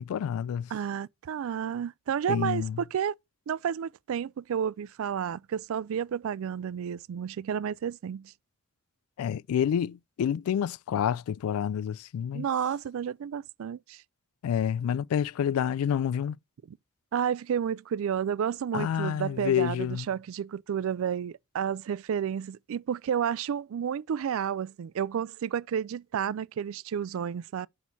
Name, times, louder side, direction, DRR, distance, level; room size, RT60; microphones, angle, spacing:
voice 1, 0.0-0.7 2.3-2.8 9.2-12.4 14.4-16.4 18.7-20.1, left 9 dB, 85° left, 0.3 m, -28 dB
voice 2, 0.7-3.1 3.5-8.3 12.3-14.0 16.7-16.8 17.1-27.7, right 8 dB, 70° right, 0.3 m, -31 dB
6.3 x 4.1 x 5.6 m
head